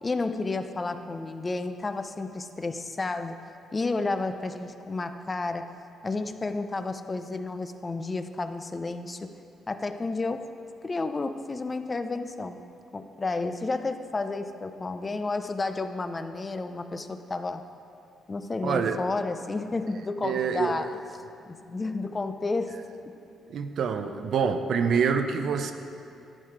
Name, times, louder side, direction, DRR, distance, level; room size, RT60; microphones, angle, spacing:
voice 1, 0.0-3.4 3.7-5.7 6.0-9.4 9.7-10.5 10.8-12.7 12.9-17.6 18.3-20.9 21.5-23.2, left 3 dB, 25° left, 9 dB, 0.4 m, -31 dB
voice 2, 18.6-19.0 20.2-20.8 23.5-25.7, right 6 dB, 65° right, 8 dB, 0.5 m, -26 dB
11.5 x 4.7 x 4.8 m, 2.5 s
cardioid pair, 90°, 0 cm